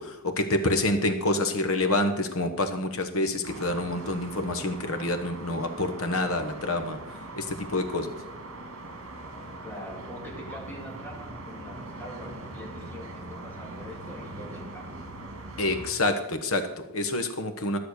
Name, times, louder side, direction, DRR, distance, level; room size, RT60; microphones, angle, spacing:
voice 1, 0.0-7.0 7.3-8.2 15.6-17.8, left 2 dB, 70° left, 7 dB, 1.3 m, -27 dB
sound 1, 3.4-15.9, right 2 dB, 65° right, 2.3 m, -41 dB
voice 2, 9.6-14.9, equal, 10° left, -3 dB, 2.8 m, -43 dB
13.0 x 6.7 x 6.6 m, 0.92 s
head